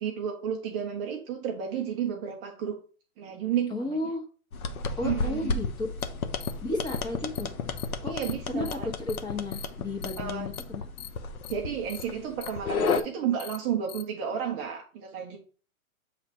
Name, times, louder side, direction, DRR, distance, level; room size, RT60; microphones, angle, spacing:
voice 1, 0.0-2.8 3.2-4.1 5.0-5.6 8.0-8.9 10.2-10.5 11.5-15.4, right 8 dB, 20° right, 1 dB, 0.6 m, -32 dB
voice 2, 3.7-4.3 5.0-5.9 6.6-7.5 8.0-8.1 8.5-11.1, left 2 dB, 10° left, 1 dB, 0.9 m, -33 dB
sound 1, 4.5-13.0, left 4 dB, 75° left, 1.0 m, -32 dB
sound 2, 6.0-6.1 6.4-6.5 6.9-7.0 7.4-7.5 7.8-7.9 8.2-8.3 8.7-8.8 9.1-9.2 9.5-9.7 10.0-10.2 10.5-10.6 11.0-11.1 11.4-11.5 11.9-12.0 12.4-12.5 12.9-13.0 13.4-13.6 13.9-14.0, left 11 dB, 30° left, 0.6 m, -41 dB
7.3 x 3.4 x 4.2 m, 0.39 s
hypercardioid pair, 135°, 43 cm